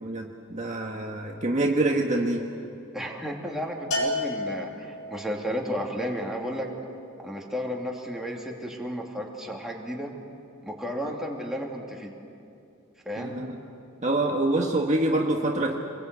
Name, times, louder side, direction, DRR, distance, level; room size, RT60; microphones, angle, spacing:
voice 1, 0.0-2.5 13.2-13.5 14.0-15.8, right 2 dB, 35° right, 0 dB, 1.5 m, -26 dB
voice 2, 2.9-6.7 7.2-10.1 10.6-12.2 13.0-13.4, equal, ahead, -2 dB, 2.8 m, -33 dB
Bell, 3.9-5.3, left 1 dB, 70° left, 5.8 m, -30 dB
27.0 x 21.5 x 8.3 m, 2.6 s
head